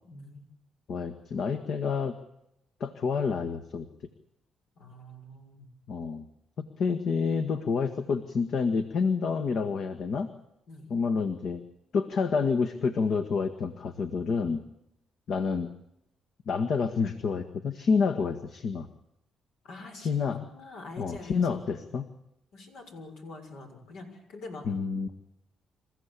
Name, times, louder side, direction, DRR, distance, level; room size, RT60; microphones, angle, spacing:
voice 1, 0.0-0.5 4.7-5.7 10.7-10.9 19.6-21.9 22.5-24.6, left 2 dB, 80° left, 4 dB, 6.7 m, -45 dB
voice 2, 0.9-2.1 2.8-3.9 5.9-6.3 6.6-10.3 10.9-11.6 11.9-14.6 15.3-15.7 16.5-18.9 20.0-20.4 21.0-22.1 24.7-25.1, left 5 dB, 65° left, 9 dB, 1.7 m, -28 dB
27.5 x 15.0 x 8.5 m, 0.84 s
cardioid pair, 90°, 0 cm